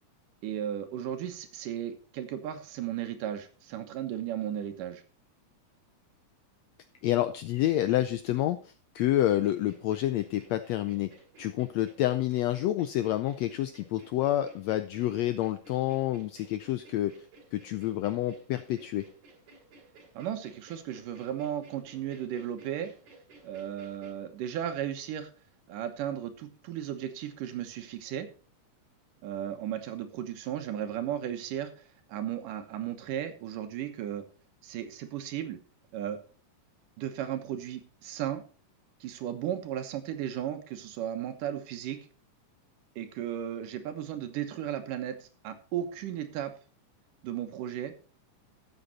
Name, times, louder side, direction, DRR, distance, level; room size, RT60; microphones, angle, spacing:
voice 1, 0.4-5.0 20.1-22.9 23.4-25.3 25.7-28.3 29.2-34.2 34.6-35.6 35.9-36.2 37.0-38.4 39.0-42.0 43.0-46.5 47.2-47.9, right 10 dB, 85° right, 8 dB, 2.8 m, -35 dB
voice 2, 7.0-11.1 11.4-17.1 17.5-19.0, left 13 dB, 85° left, 11 dB, 1.5 m, -28 dB
sound 1, 9.4-24.1, right 3 dB, 70° right, 3.8 m, -56 dB
12.5 x 7.8 x 4.1 m, 0.39 s
omnidirectional pair, 3.7 m